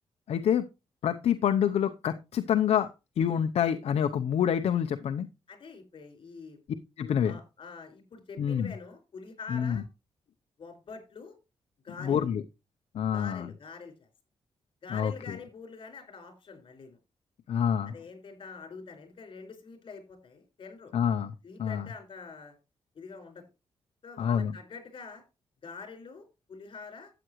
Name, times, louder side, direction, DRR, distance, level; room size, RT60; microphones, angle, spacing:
voice 1, 0.3-0.7 1.0-2.9 3.2-5.3 7.0-7.4 8.4-8.7 9.5-9.8 12.0-12.4 12.9-13.5 14.9-15.4 17.5-17.9 20.9-21.3 21.6-21.9 24.2-24.5, left 8 dB, 75° left, 8 dB, 0.7 m, -27 dB
voice 2, 5.5-6.6 7.2-9.8 10.6-11.4 11.8-12.3 13.1-14.1 14.8-17.0 17.9-20.9 21.4-22.6 22.9-23.4 24.0-25.2 25.6-27.1, left 4 dB, 50° left, 6 dB, 4.8 m, -45 dB
13.0 x 8.9 x 3.1 m, 0.27 s
cardioid pair, 115°, 11 cm